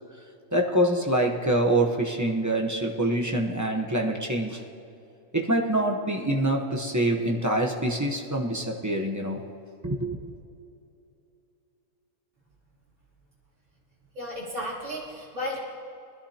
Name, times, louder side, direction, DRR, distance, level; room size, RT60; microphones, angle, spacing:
voice 1, 0.5-4.6 5.3-9.4 9.8-10.2, right 1 dB, 15° right, 0 dB, 0.8 m, -25 dB
voice 2, 14.1-15.6, left 1 dB, 60° right, -7 dB, 3.4 m, -33 dB
20.5 x 13.0 x 2.9 m, 2.7 s
omnidirectional pair, 1.4 m